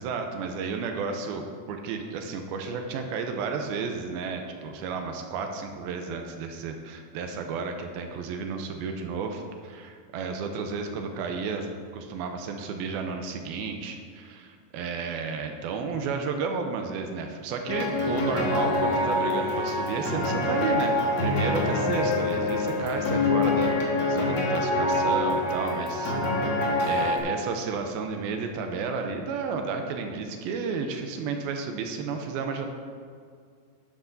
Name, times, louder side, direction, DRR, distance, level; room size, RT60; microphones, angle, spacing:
voice 1, 0.0-11.7 11.9-32.7, right 5 dB, 85° right, 4 dB, 2.5 m, -32 dB
sound 1, 17.7-27.2, left 2 dB, 60° left, 2.6 m, -25 dB
13.0 x 9.8 x 2.7 m, 2.1 s
omnidirectional pair, 4.4 m